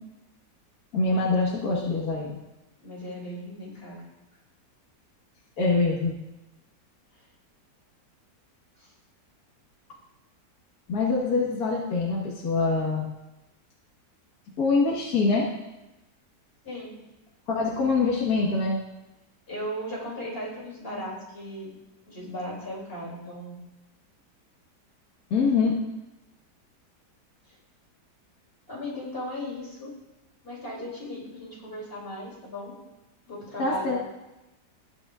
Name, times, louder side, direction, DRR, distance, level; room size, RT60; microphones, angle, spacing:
voice 1, 0.9-2.4 5.6-6.2 10.9-13.1 14.6-15.5 17.5-18.8 25.3-25.7 33.6-34.0, left 4 dB, 60° left, -4 dB, 1.9 m, -24 dB
voice 2, 2.8-4.0 8.8-8.9 16.6-16.9 19.5-21.7 22.1-23.6 28.7-29.9 30.4-32.7 33.3-34.0, equal, 35° left, -4 dB, 3.2 m, -37 dB
20.0 x 7.9 x 2.5 m, 0.99 s
omnidirectional pair, 1.8 m